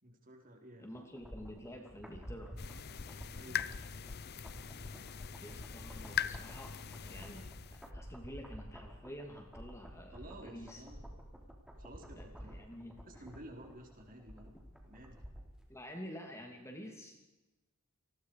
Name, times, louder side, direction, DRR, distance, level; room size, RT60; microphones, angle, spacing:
voice 1, 0.0-0.9 3.3-3.8 10.1-11.0 11.8-12.6 13.0-14.6 14.9-15.2, right 1 dB, 40° right, 2 dB, 4.3 m, -53 dB
voice 2, 0.8-2.5 5.4-10.8 12.1-13.3 15.7-17.2, equal, 15° left, 2 dB, 2.8 m, -49 dB
sound 1, 0.9-15.6 15.9-16.0, equal, 5° right, 3.7 m, -51 dB
sound 2, 2.6-7.9, left 8 dB, 45° left, 0.7 m, -41 dB
29.0 x 20.5 x 4.9 m, 1.0 s
head